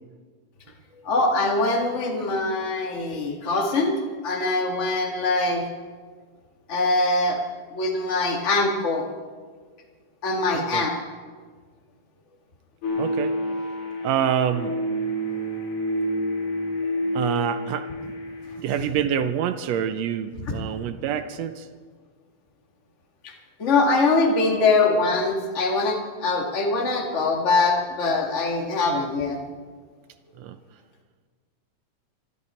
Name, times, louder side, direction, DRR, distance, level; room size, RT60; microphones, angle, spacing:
voice 1, 1.1-4.0 4.2-5.6 6.7-7.4 7.7-9.0 10.2-10.9 20.4-20.6 23.6-29.4, left 3 dB, 25° left, 0 dB, 1.7 m, -23 dB
voice 2, 10.5-10.8 13.0-13.4 14.0-14.7 17.1-18.1 18.6-21.6 30.4-30.5, right 9 dB, 75° right, 10 dB, 1.5 m, -26 dB
sound 1, 12.8-18.6, equal, 55° left, 4.7 m, -28 dB
24.0 x 12.5 x 4.4 m, 1.6 s
omnidirectional pair, 3.8 m